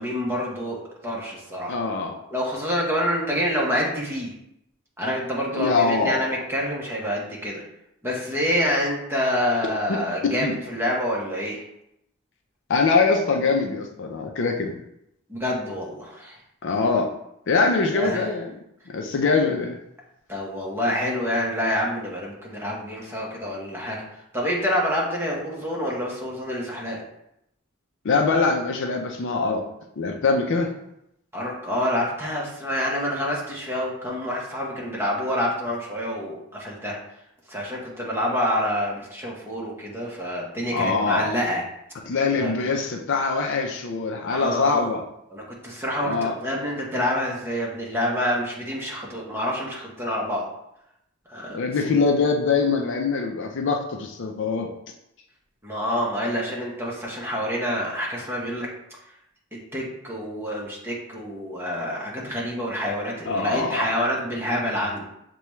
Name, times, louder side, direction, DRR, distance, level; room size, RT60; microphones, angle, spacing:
voice 1, 0.0-1.8 2.3-4.3 5.0-7.6 8.0-11.6 15.3-16.4 17.9-18.3 20.3-24.0 24.3-27.0 31.3-37.0 37.5-41.6 42.3-42.5 44.3-44.9 45.3-50.5 51.3-51.6 55.6-58.7 59.7-65.1, equal, 10° right, -3 dB, 0.9 m, -27 dB
voice 2, 1.7-2.1 5.5-6.2 9.9-10.0 10.4-10.6 12.7-14.8 16.6-17.1 17.5-18.4 18.9-19.8 28.0-29.6 30.0-30.7 40.7-41.3 42.1-45.0 46.0-46.3 51.5-54.7 63.3-63.9, left 4 dB, 55° left, 3 dB, 0.5 m, -23 dB
6.7 x 2.3 x 3.1 m, 0.81 s
head